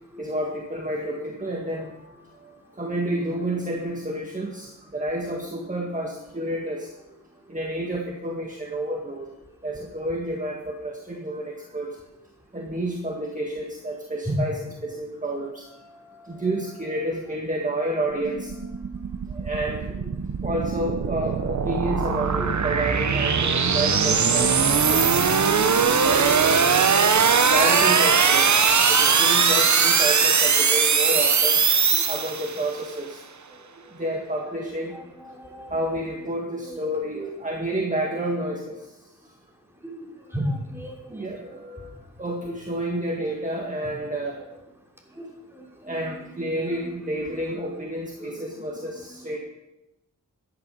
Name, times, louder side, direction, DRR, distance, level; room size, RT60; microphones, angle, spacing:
voice 1, 0.2-6.9 7.5-9.3 9.6-12.0 12.5-14.6 14.8-18.7 19.3-19.9 20.4-25.3 26.0-27.0 27.5-31.6 32.1-33.2 33.7-35.0 35.7-38.9 41.1-44.4 45.8-49.4, right 1 dB, 25° right, 0 dB, 1.7 m, -30 dB
sound 1, 18.1-32.7, right 6 dB, 60° right, 0.9 m, -20 dB
voice 2, 22.9-23.3 25.7-26.2 29.1-29.7 32.0-32.1 34.6-35.9 36.3-37.4 39.8-40.0 40.3-41.0 41.6-41.9 42.5-42.6 44.4-44.5 45.2-45.3 45.5-46.4 46.7-46.9 47.3-47.7 48.2-48.6, equal, 5° right, 0 dB, 3.3 m, -36 dB
14.0 x 10.5 x 5.4 m, 0.96 s
wide cardioid pair, 80°, 33 cm